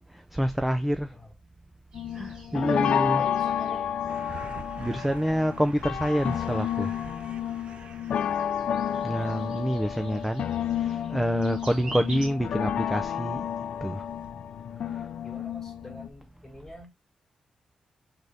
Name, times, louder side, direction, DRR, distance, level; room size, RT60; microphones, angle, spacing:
voice 1, 0.0-1.1 2.1-3.2 4.3-4.5 4.8-7.0 9.0-10.5 10.7-13.5 13.8-14.1 14.9-15.1, equal, 5° right, 0.3 m, -27 dB
sound 1, 1.9-16.1, left 9 dB, 75° left, 0.3 m, -31 dB
sound 2, 1.9-12.3, right 2 dB, 45° right, 2.6 m, -48 dB
voice 2, 2.5-3.9 15.2-16.9, left 1 dB, 10° left, 2.2 m, -46 dB
sound 3, 4.1-10.4 12.5-13.0 13.4-14.0 14.2-14.3, right 6 dB, 60° right, 0.5 m, -47 dB
4.0 x 3.7 x 3.3 m
wide cardioid pair, 125°, 2 cm